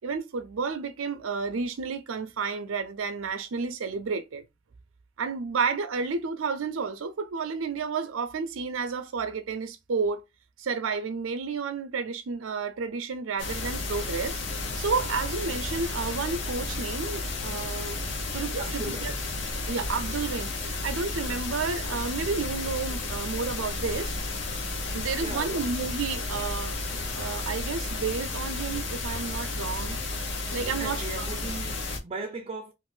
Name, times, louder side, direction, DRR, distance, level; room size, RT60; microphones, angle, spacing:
voice 1, 0.0-4.4 5.2-10.2 10.6-14.4 14.8-18.0 18.3-19.1 19.7-24.1 24.9-30.0 30.5-31.3, right 5 dB, 85° right, 0.5 m, -31 dB
sound 1, 13.4-32.0, left 2 dB, 65° left, 0.7 m, -32 dB
voice 2, 18.6-19.4 25.2-25.7 30.6-32.7, right 3 dB, 30° right, 0.4 m, -38 dB
2.5 x 2.5 x 3.7 m
head